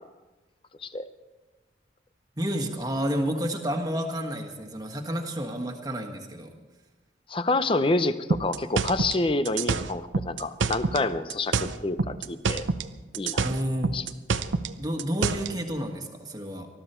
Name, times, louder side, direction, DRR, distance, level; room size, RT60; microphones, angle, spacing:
voice 1, 2.4-6.5 13.4-13.9 14.8-16.7, equal, 20° right, 3 dB, 1.5 m, -30 dB
voice 2, 7.3-12.6 13.1-13.5 13.9-14.0, left 2 dB, 30° left, 12 dB, 0.6 m, -27 dB
sound 1, 8.3-11.0 11.3-12.9 13.1-15.5, right 4 dB, 85° right, 0.7 m, -27 dB
20.0 x 13.5 x 4.4 m, 1.2 s
head